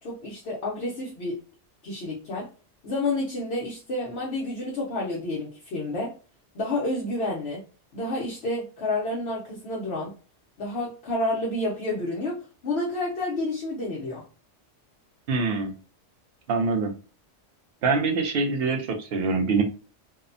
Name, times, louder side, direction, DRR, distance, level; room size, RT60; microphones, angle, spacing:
voice 1, 0.0-1.4 1.8-2.5 2.8-6.1 6.5-7.6 7.9-10.1 10.6-14.2, left 2 dB, 65° left, -4 dB, 0.9 m, -29 dB
voice 2, 15.3-15.7 16.5-16.9 17.8-19.6, right 4 dB, 65° right, 4 dB, 0.7 m, -24 dB
2.7 x 2.1 x 2.5 m, 0.35 s
omnidirectional pair, 1.2 m